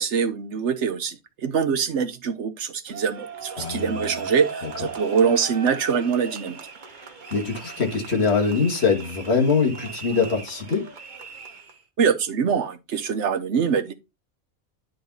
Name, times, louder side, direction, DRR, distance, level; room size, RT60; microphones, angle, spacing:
voice 1, 0.0-6.6 12.0-13.9, right 6 dB, 60° right, 1.2 m, -24 dB
sound 1, 2.9-11.8, right 5 dB, 40° right, 1.1 m, -37 dB
voice 2, 3.6-4.2 7.3-10.8, left 5 dB, 50° left, 2.1 m, -23 dB
10.0 x 4.0 x 4.0 m
omnidirectional pair, 1.5 m